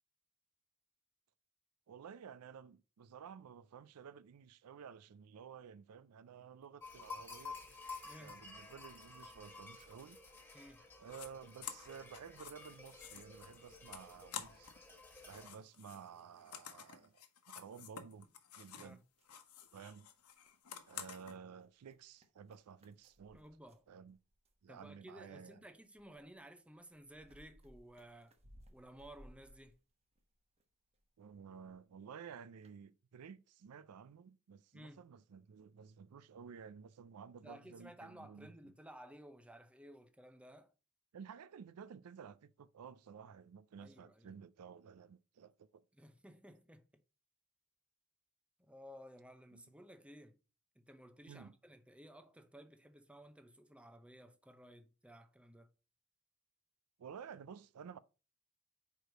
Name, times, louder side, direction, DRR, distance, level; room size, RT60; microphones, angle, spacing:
voice 1, 1.9-7.6 8.2-10.2 11.0-14.7 15.3-18.3 18.6-19.0 19.7-20.1 20.9-23.4 23.9-24.2 24.6-25.6 31.2-38.5 41.1-45.8 49.5-49.6 51.3-51.5 57.0-58.0, right 7 dB, 85° right, 0.4 m, -53 dB
sound 1, 6.8-15.5, left 4 dB, 10° left, 1.6 m, -52 dB
voice 2, 8.0-8.4 10.5-10.8 18.7-19.0 23.3-23.9 24.7-28.3 28.7-29.8 34.7-35.1 37.4-40.7 43.8-44.4 45.9-46.8 48.6-50.4 50.8-55.7, equal, 5° right, 0.6 m, -56 dB
sound 2, 11.0-11.3 11.6-14.8 15.1-19.0 19.2-21.3, left 8 dB, 75° left, 1.0 m, -51 dB
sound 3, 19.2-20.0 20.3-24.7 25.3-30.6 30.9-31.8 32.2-32.3 32.6-32.8, equal, 30° right, 1.0 m, -64 dB
4.8 x 4.7 x 5.1 m
head